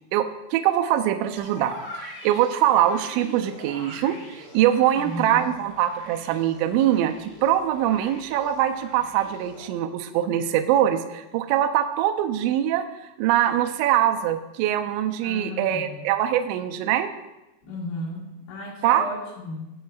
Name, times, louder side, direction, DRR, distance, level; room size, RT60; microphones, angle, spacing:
voice 1, 0.1-12.8 13.2-17.1 18.8-19.0, right 11 dB, 80° right, 6 dB, 2.8 m, -23 dB
sound 1, 1.4-9.7, left 1 dB, 45° left, 1.8 m, -43 dB
voice 2, 5.0-5.5 15.2-16.0 17.6-19.7, left 2 dB, 75° left, -4 dB, 4.6 m, -35 dB
20.0 x 7.5 x 2.4 m, 0.97 s
omnidirectional pair, 5.5 m